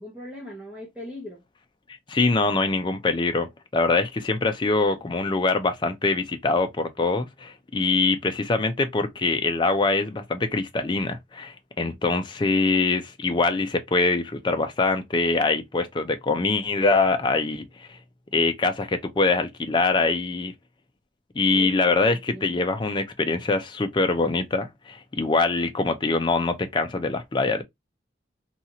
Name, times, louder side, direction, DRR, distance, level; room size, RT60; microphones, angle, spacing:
voice 1, 0.0-1.4 11.8-12.0 21.5-22.7, left 1 dB, 5° right, 0.8 m, -40 dB
voice 2, 2.1-18.0 18.3-20.5 21.3-27.6, left 3 dB, 25° left, 0.4 m, -24 dB
2.7 x 2.4 x 2.7 m
head